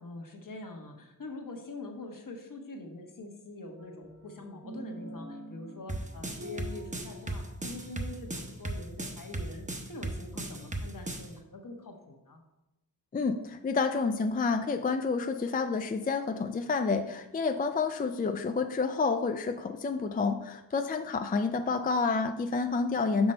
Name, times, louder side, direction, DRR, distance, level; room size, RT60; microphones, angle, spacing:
voice 1, 0.0-12.4, left 2 dB, 60° left, 3 dB, 1.2 m, -44 dB
sound 1, 3.8-8.8, equal, 45° right, 1.0 m, -46 dB
sound 2, 5.9-11.3, right 2 dB, 20° right, 0.8 m, -36 dB
voice 2, 13.1-23.3, left 4 dB, 25° left, 7 dB, 0.3 m, -29 dB
6.1 x 5.2 x 4.3 m, 0.94 s
wide cardioid pair, 100°, 37 cm